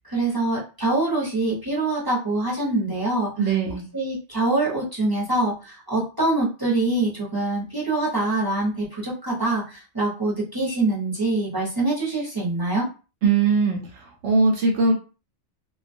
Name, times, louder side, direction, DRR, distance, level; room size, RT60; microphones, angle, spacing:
voice 1, 0.1-3.3 3.9-12.9, right 2 dB, 20° right, -5 dB, 0.7 m, -24 dB
voice 2, 3.4-3.9 13.2-14.9, right 4 dB, 75° right, -1 dB, 0.9 m, -21 dB
2.3 x 2.3 x 2.5 m, 0.34 s
omnidirectional pair, 1.2 m